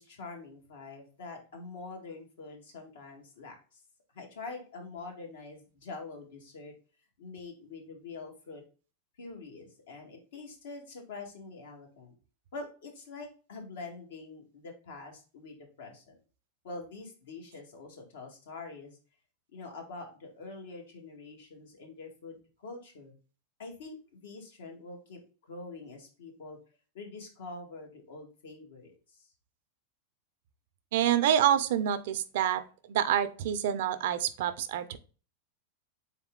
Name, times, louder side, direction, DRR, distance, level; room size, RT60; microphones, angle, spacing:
voice 1, 0.0-3.8 4.1-6.7 7.2-8.6 9.2-12.1 12.5-16.2 16.6-19.0 19.5-23.2 23.6-25.2 25.5-26.6 26.9-29.3, left 3 dB, 80° left, 1 dB, 1.7 m, -45 dB
voice 2, 30.9-32.6 32.9-35.0, right 10 dB, 70° right, 11 dB, 0.5 m, -27 dB
4.0 x 3.5 x 3.7 m, 0.36 s
hypercardioid pair, 125°, 0 cm